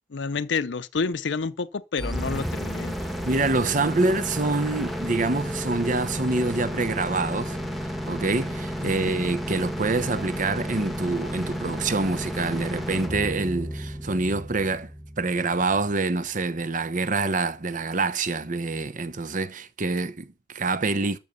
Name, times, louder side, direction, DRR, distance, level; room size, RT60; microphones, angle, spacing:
voice 1, 0.1-2.9 8.8-9.1, left 4 dB, 70° left, 0.6 m, -29 dB
sound 1, 2.0-15.9, equal, ahead, 1.5 m, -32 dB
voice 2, 3.2-7.6 8.1-14.9 15.2-21.2, right 3 dB, 45° right, 0.9 m, -26 dB
sound 2, 3.7-6.7 7.3-7.9 9.5-10.2 10.8-14.7, equal, 65° right, 6.9 m, -49 dB
12.5 x 6.3 x 6.7 m
head